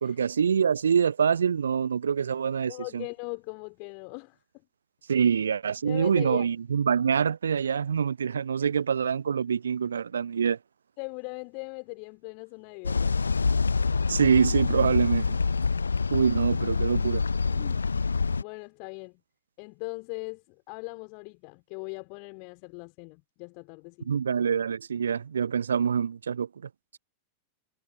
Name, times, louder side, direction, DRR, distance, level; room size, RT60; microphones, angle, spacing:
voice 1, 0.0-3.0 5.1-10.6 14.1-15.4 16.1-17.2 24.1-26.7, right 7 dB, 70° right, 0.4 m, -25 dB
voice 2, 2.7-4.4 5.1-5.2 5.8-6.5 11.0-13.2 17.5-19.2 19.6-24.1, left 40 dB or more, 45° left, 3.6 m, -40 dB
sound 1, 12.8-18.4, left 4 dB, 75° left, 0.7 m, -26 dB
figure-of-eight pair, 90°, 0 cm